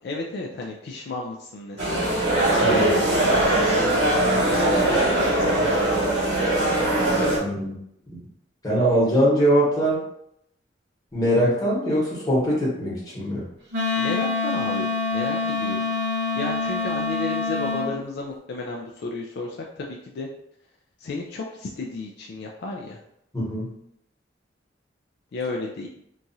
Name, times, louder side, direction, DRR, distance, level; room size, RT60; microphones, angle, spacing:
voice 1, 0.0-2.1 2.7-6.2 14.0-15.9 16.4-20.3 21.0-23.0 25.3-25.9, left 2 dB, 60° left, -1 dB, 0.3 m, -33 dB
sound 1, 1.8-7.4, right 1 dB, 90° right, 1.4 m, -21 dB
voice 2, 7.4-7.7 8.1-8.2 8.6-10.0 11.1-13.4 23.3-23.7, equal, 20° left, -7 dB, 1.1 m, -22 dB
Wind instrument woodwind instrument, 13.7-17.9, left 4 dB, 65° right, 0.9 m, -26 dB
2.9 x 2.3 x 2.6 m, 0.76 s
head